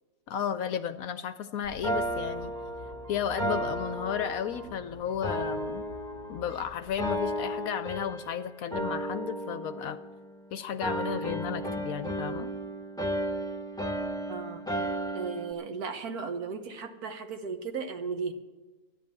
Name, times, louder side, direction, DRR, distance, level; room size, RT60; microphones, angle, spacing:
voice 1, 0.3-2.5 3.1-5.9 6.3-10.0 10.5-12.5, left 8 dB, 70° left, 12 dB, 1.0 m, -33 dB
sound 1, 1.6-7.8, left 1 dB, 45° right, 2.4 m, -48 dB
sound 2, 1.8-4.8 5.2-6.6 7.0-8.4 8.7-10.4 10.8-15.5, right 1 dB, 5° left, 0.8 m, -34 dB
voice 2, 14.3-14.6 15.1-18.3, right 5 dB, 65° right, 7 dB, 1.5 m, -35 dB
13.0 x 9.9 x 7.5 m, 1.2 s
omnidirectional pair, 1.7 m